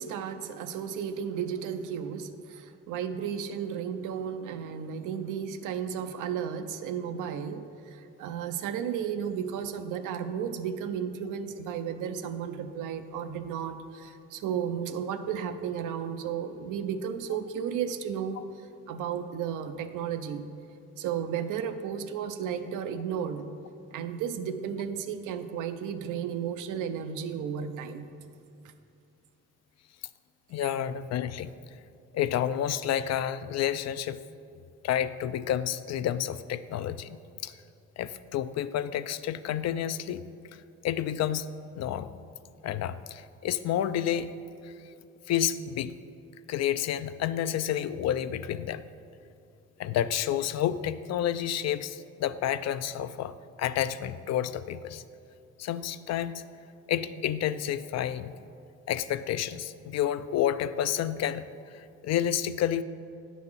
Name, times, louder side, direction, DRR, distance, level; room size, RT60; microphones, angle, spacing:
voice 1, 0.0-18.4 18.9-20.4 21.0-23.4 23.9-28.1, right 8 dB, 90° right, 9 dB, 0.6 m, -33 dB
voice 2, 30.5-31.5 32.1-34.2 34.8-37.2 37.4-37.5 38.0-40.2 40.8-41.5 41.8-42.1 42.6-44.3 44.6-44.7 45.3-46.0 46.5-48.8 49.8-55.0 55.6-56.4 56.9-58.3 58.9-62.8, left 10 dB, 60° left, 14 dB, 0.4 m, -30 dB
9.4 x 4.1 x 7.2 m, 2.4 s
cardioid pair, 90°, 30 cm